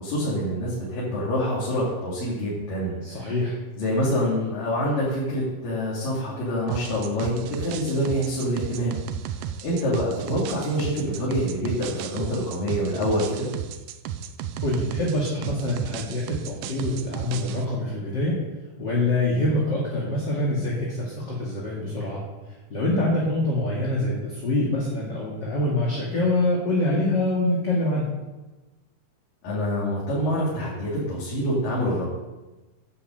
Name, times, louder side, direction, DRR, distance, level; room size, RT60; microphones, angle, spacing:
voice 1, 0.0-3.3 3.8-13.5 29.4-32.1, equal, 85° left, -8 dB, 4.6 m, -26 dB
voice 2, 3.0-3.6 14.6-18.3 18.8-22.2 22.7-28.1, left 1 dB, 35° left, -4 dB, 2.4 m, -25 dB
sound 1, 6.7-17.6, right 9 dB, 90° right, 2.3 m, -34 dB
10.0 x 8.6 x 7.9 m, 1.1 s
omnidirectional pair, 3.8 m